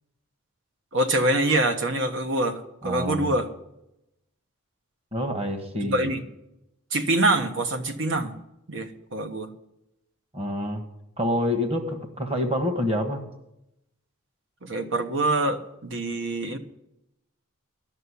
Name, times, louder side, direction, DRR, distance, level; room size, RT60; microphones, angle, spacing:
voice 1, 0.9-3.5 5.8-6.2 6.9-8.4 8.7-9.5 14.6-16.6, right 2 dB, 60° right, 7 dB, 1.2 m, -25 dB
voice 2, 2.8-3.3 5.1-6.1 10.3-10.8 11.2-13.2, left 1 dB, 30° right, 5 dB, 1.6 m, -27 dB
12.0 x 6.9 x 9.8 m, 0.87 s
head